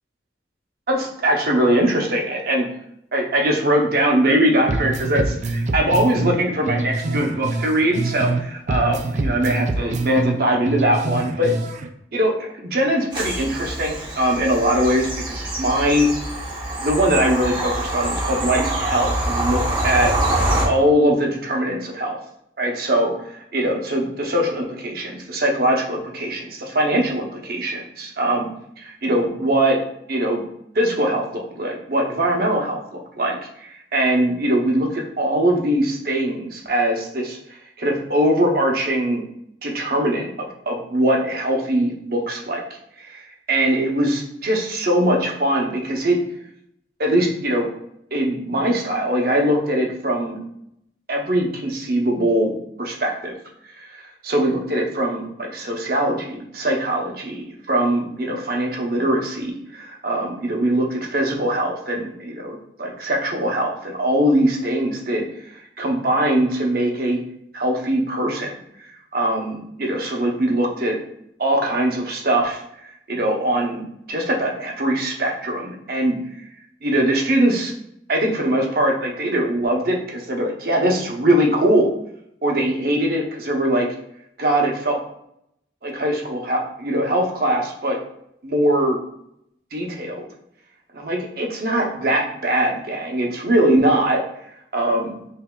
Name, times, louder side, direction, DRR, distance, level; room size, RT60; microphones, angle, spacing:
voice 1, 0.9-2.7 3.1-11.5 12.1-16.1 16.8-20.1 20.6-22.2 22.6-23.1 23.5-28.5 28.8-29.8 30.1-30.4 30.7-39.2 39.6-42.6 43.0-46.2 47.0-47.7 48.1-50.4 51.1-52.5 52.8-53.3 53.8-65.2 65.8-67.2 67.5-68.5 69.1-71.0 71.4-76.2 76.8-77.7 78.1-81.9 82.4-83.9 84.4-85.0 85.8-88.0 88.4-89.0 89.7-90.3 90.9-94.2 94.7-95.1, right 1 dB, 60° right, 0 dB, 0.8 m, -21 dB
sound 1, 4.7-8.4 8.7-11.9, right 2 dB, 40° right, 0.3 m, -25 dB
Bird vocalization bird call bird song / Train, 13.1-20.7, right 1 dB, 25° right, 1.0 m, -25 dB
5.7 x 2.7 x 2.3 m, 0.75 s
head